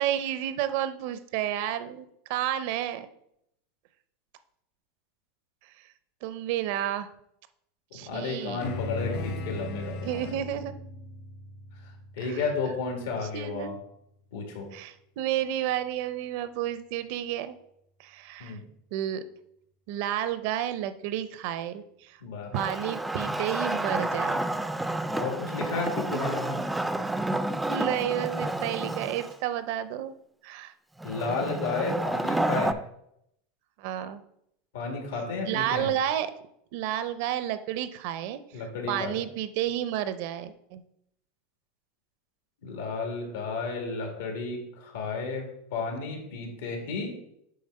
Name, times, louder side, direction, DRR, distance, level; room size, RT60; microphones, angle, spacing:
voice 1, 0.0-3.1 6.2-7.1 7.9-8.8 10.0-10.7 12.3-12.4 13.2-13.8 14.7-17.6 18.0-18.6 18.9-19.2 19.9-22.2 22.5-24.5 26.1-26.3 27.7-30.1 30.4-30.7 33.8-34.2 35.4-36.3 36.7-40.8, right 11 dB, 60° right, 12 dB, 0.5 m, -31 dB
voice 2, 7.9-10.2 12.1-13.7 14.3-14.7 18.4-18.6 22.2-22.5 25.1-26.6 31.0-32.7 34.7-35.9 38.5-39.2 42.6-47.2, left 4 dB, 85° left, 2 dB, 1.9 m, -32 dB
sound 1, 8.6-13.3, left 2 dB, 60° left, 1.1 m, -37 dB
Wood, 22.5-29.4 31.0-32.7, right 1 dB, 5° right, 0.3 m, -30 dB
7.8 x 3.4 x 5.3 m, 0.76 s
supercardioid pair, 140°, 0 cm